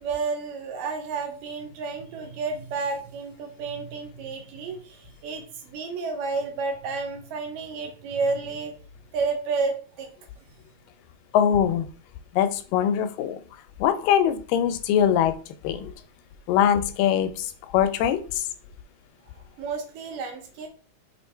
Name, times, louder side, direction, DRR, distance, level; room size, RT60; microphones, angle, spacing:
voice 1, 0.0-8.7 9.1-10.1 19.6-20.7, right 4 dB, 80° right, 3 dB, 2.7 m, -31 dB
voice 2, 11.3-11.9 12.3-13.4 13.8-15.3 15.6-15.9 16.5-18.5, left 9 dB, 90° left, 10 dB, 2.3 m, -22 dB
5.8 x 3.7 x 4.4 m, 0.40 s
omnidirectional pair, 3.8 m